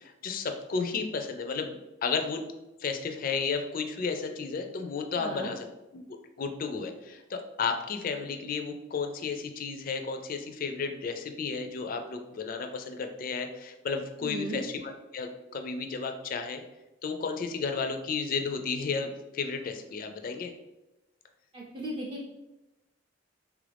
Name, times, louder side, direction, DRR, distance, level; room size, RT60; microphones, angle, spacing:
voice 1, 0.0-1.8 2.0-2.4 2.8-5.7 5.9-6.0 6.4-16.6 17.0-20.5, left 5 dB, 45° left, 6 dB, 0.4 m, -33 dB
voice 2, 5.2-5.5 14.2-14.6 21.5-22.3, right 1 dB, 25° right, -4 dB, 0.4 m, -36 dB
3.3 x 2.4 x 3.3 m, 1.0 s
head